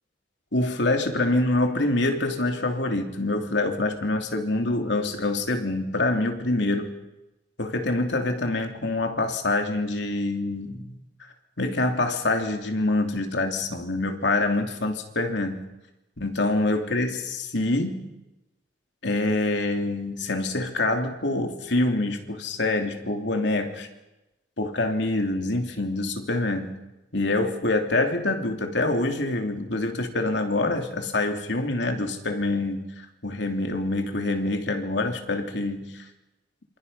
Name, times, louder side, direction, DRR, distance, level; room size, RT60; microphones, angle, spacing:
voice 1, 0.5-6.9 7.6-11.0 11.6-15.7 16.2-18.1 19.0-23.9 24.6-26.8 27.1-36.0, left 2 dB, 75° left, 4 dB, 3.0 m, -26 dB
27.0 x 27.0 x 5.7 m, 0.98 s
head